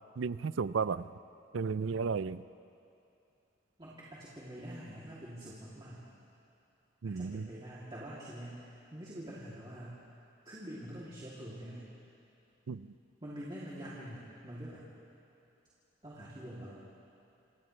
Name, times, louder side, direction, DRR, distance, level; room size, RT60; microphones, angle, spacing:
voice 1, 0.2-1.1 1.5-2.4 7.0-7.5 12.7-12.9, right 5 dB, 85° right, 16 dB, 0.5 m, -33 dB
voice 2, 3.8-6.1 7.0-10.0 10.4-11.9 13.2-14.8 16.0-16.8, equal, 25° right, -9 dB, 2.9 m, -45 dB
28.5 x 28.0 x 3.3 m, 2.6 s
head